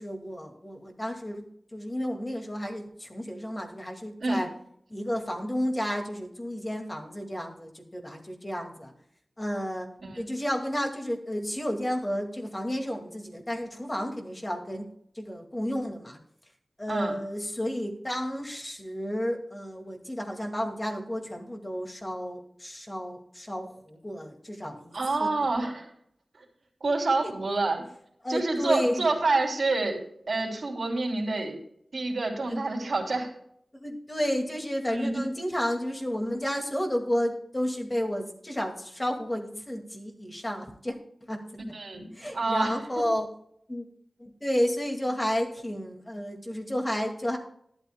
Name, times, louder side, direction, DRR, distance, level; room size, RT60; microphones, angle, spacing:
voice 1, 0.0-1.5 1.7-4.5 4.9-8.9 9.4-9.9 10.2-14.9 15.1-16.2 16.8-25.3 27.2-27.3 28.2-29.1 33.8-41.0 41.3-41.4 42.1-43.3 43.7-43.9 44.2-47.4, equal, 20° left, 2 dB, 2.0 m, -31 dB
voice 2, 24.9-25.9 26.4-26.5 26.8-27.8 28.3-31.6 31.9-33.3 34.9-35.3 41.7-42.7, right 3 dB, 65° right, 0 dB, 3.0 m, -28 dB
13.5 x 12.0 x 2.2 m, 0.68 s
wide cardioid pair, 95°, 0 cm